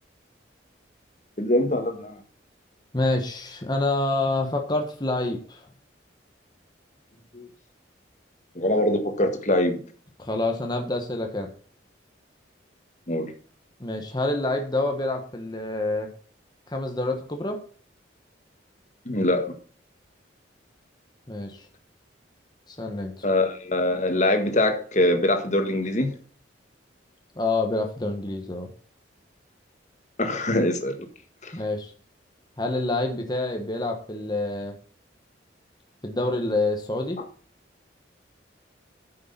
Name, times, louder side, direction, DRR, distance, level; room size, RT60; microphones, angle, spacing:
voice 1, 1.4-2.2 7.3-7.5 8.6-9.8 13.1-13.3 19.1-19.6 23.2-26.1 30.2-31.1 31.4-31.6, left 1 dB, 40° left, 7 dB, 1.7 m, -23 dB
voice 2, 2.9-5.6 10.2-11.5 13.8-16.1 16.7-17.6 21.3-21.6 22.7-23.1 27.4-28.7 31.5-31.9 32.6-34.7 36.0-37.2, left 2 dB, 20° left, 3 dB, 1.3 m, -27 dB
9.5 x 6.5 x 5.6 m, 0.42 s
head